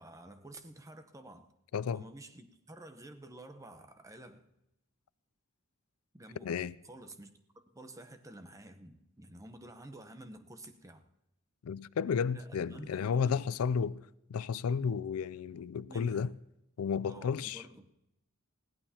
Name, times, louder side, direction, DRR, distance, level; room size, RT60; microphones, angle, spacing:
voice 1, 0.0-1.5 1.9-4.5 6.1-6.5 6.9-7.3 7.7-11.1 12.3-13.4 15.9-16.3 17.1-17.9, right 1 dB, 15° right, 0.8 m, -50 dB
voice 2, 1.7-2.0 6.4-6.7 11.6-16.3 16.8-17.6, left 6 dB, 85° left, 0.4 m, -32 dB
20.5 x 16.0 x 2.8 m
head